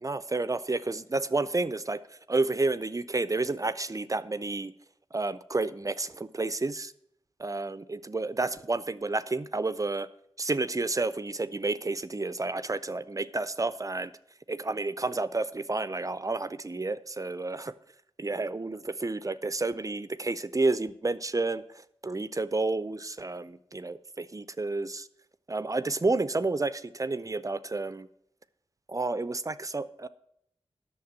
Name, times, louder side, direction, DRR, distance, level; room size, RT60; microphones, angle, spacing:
voice 1, 0.0-2.0 2.3-4.7 5.1-6.9 7.4-10.1 10.4-14.1 14.5-17.7 18.2-21.6 22.0-25.1 25.5-28.1 28.9-30.1, right 3 dB, 35° right, 14 dB, 0.5 m, -30 dB
8.6 x 6.7 x 7.6 m, 0.75 s
wide cardioid pair, 55°, 10 cm